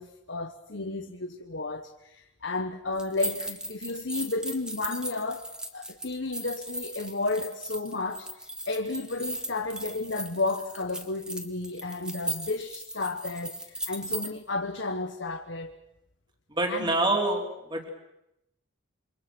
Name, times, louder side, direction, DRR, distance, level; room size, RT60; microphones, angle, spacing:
voice 1, 0.0-8.3 8.7-15.8 16.7-16.9, left 3 dB, 60° left, 1.2 m, -32 dB
sound 1, 3.0-14.3, right 1 dB, 5° right, 1.7 m, -37 dB
voice 2, 16.5-17.9, right 2 dB, 20° right, 3.5 m, -26 dB
28.0 x 24.5 x 6.2 m
head